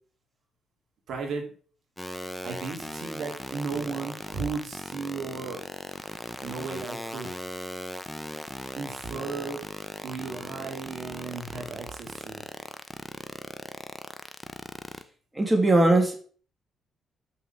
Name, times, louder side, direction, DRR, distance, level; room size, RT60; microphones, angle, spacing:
voice 1, 1.1-1.5 2.4-5.6 6.4-7.7 8.7-9.6 10.0-12.4, right 4 dB, 65° right, 2 dB, 2.5 m, -35 dB
sound 1, 2.0-15.0, equal, 5° left, 0.8 m, -37 dB
voice 2, 15.4-16.2, right 2 dB, 10° right, 3 dB, 2.0 m, -20 dB
6.9 x 6.0 x 5.8 m, 0.43 s
cardioid pair, 90°, 0 cm